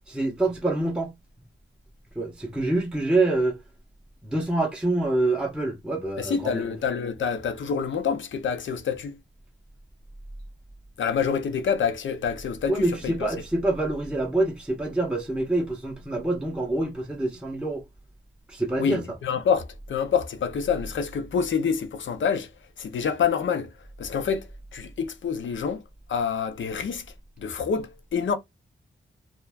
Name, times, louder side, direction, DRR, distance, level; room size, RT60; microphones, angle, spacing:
voice 1, 0.1-1.1 2.2-3.6 4.2-6.8 12.7-17.8 18.5-19.0, right 2 dB, 5° right, 0.6 m, -26 dB
voice 2, 6.2-9.2 11.0-13.3 18.8-22.5 22.8-23.7 24.0-25.8 26.1-27.1 27.4-28.4, left 6 dB, 75° left, 0.6 m, -27 dB
2.4 x 2.2 x 3.2 m
cardioid pair, 85°, 20 cm